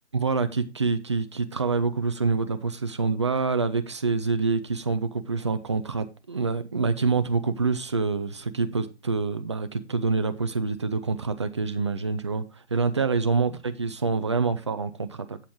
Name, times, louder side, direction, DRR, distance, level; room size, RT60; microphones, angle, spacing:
voice 1, 0.1-12.4 12.7-15.4, right 4 dB, 25° right, 0.5 m, -26 dB
8.3 x 7.3 x 3.6 m
figure-of-eight pair, 140°, 35 cm